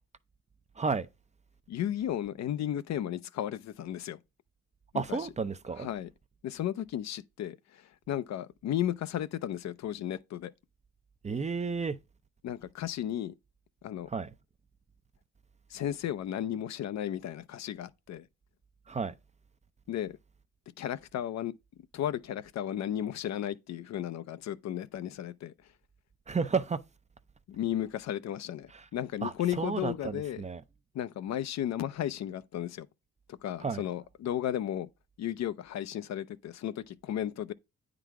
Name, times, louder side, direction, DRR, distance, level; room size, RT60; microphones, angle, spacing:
voice 1, 0.8-1.1 4.9-5.9 11.2-12.0 14.1-14.3 18.9-19.1 26.3-26.8 28.7-28.8 29.2-30.6 33.6-33.8, right 5 dB, 25° right, 0.5 m, -32 dB
voice 2, 1.7-4.2 4.9-5.2 5.8-6.1 6.4-10.5 12.4-13.3 13.8-14.1 15.7-18.3 19.9-20.2 20.8-21.5 21.9-25.5 27.5-30.4 30.9-32.9 33.3-34.9 35.2-37.5, left 11 dB, 60° left, 0.6 m, -34 dB
9.1 x 3.9 x 4.6 m
cardioid pair, 90°, 30 cm